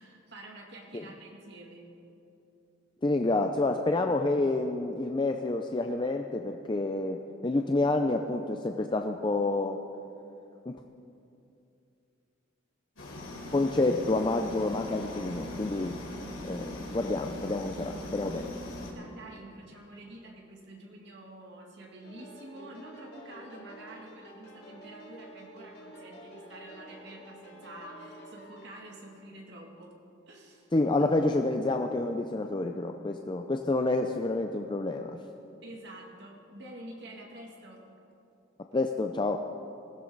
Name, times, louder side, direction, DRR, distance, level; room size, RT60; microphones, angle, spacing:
voice 1, 0.0-1.9 18.9-29.9 30.3-30.7 31.0-31.1 35.6-37.8, right 1 dB, 60° right, 0 dB, 2.4 m, -48 dB
voice 2, 3.0-9.8 10.7-10.8 13.5-16.0 16.4-18.5 30.7-35.2 38.7-39.4, left 2 dB, 25° left, 5 dB, 0.4 m, -28 dB
sound 1, 13.0-18.9, left 1 dB, 85° left, 3.7 m, -40 dB
sound 2, 22.0-28.7, right 1 dB, 60° left, 2.6 m, -49 dB
19.5 x 15.5 x 4.0 m, 2.7 s
head